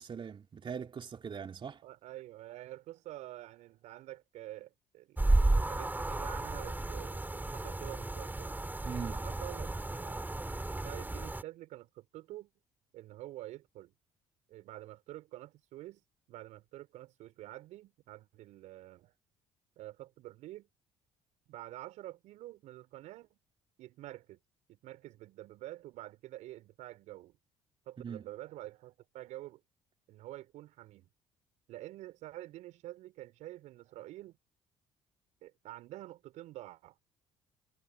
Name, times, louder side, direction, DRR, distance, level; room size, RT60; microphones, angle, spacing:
voice 1, 0.0-1.8 8.8-9.1 28.0-28.2, right 7 dB, 40° right, 3.0 m, -41 dB
voice 2, 1.8-8.6 9.0-10.4 10.8-12.5 12.9-13.9 14.5-16.0 16.3-19.1 19.8-20.7 21.5-23.4 23.8-24.4 24.7-27.4 27.8-29.6 30.1-31.1 31.7-34.4 35.4-36.9, right 15 dB, 70° right, 5.1 m, -48 dB
sound 1, 5.2-11.4, right 2 dB, 15° right, 4.7 m, -32 dB
hypercardioid pair, 55°, 13 cm